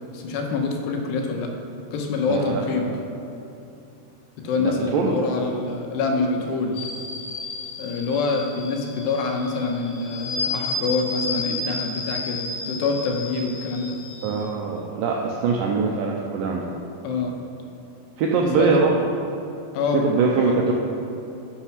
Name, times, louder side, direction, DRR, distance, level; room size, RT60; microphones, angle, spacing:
voice 1, 0.1-1.5 1.9-2.9 4.4-6.9 7.8-14.0 17.0-17.4 18.6-18.7 19.7-20.1 20.4-20.6, left 4 dB, 80° left, 2 dB, 3.2 m, -26 dB
voice 2, 2.3-2.7 4.6-5.2 14.2-16.8 18.2-19.1 20.0-20.7, right 4 dB, 85° right, -1 dB, 2.0 m, -22 dB
sound 1, 6.7-14.4, left 3 dB, 60° left, 2.1 m, -32 dB
10.0 x 6.8 x 5.9 m, 2.8 s
omnidirectional pair, 4.9 m